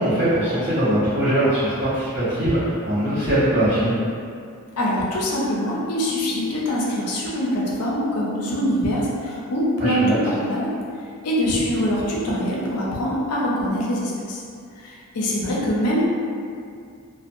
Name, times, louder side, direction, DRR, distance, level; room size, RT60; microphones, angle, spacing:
voice 1, 0.0-3.9 9.8-10.2, right 1 dB, 25° right, -18 dB, 0.9 m, -21 dB
voice 2, 4.8-10.7 11.2-14.4 14.8-16.0, equal, 90° left, -4 dB, 0.5 m, -24 dB
2.5 x 2.2 x 2.5 m, 2.3 s
head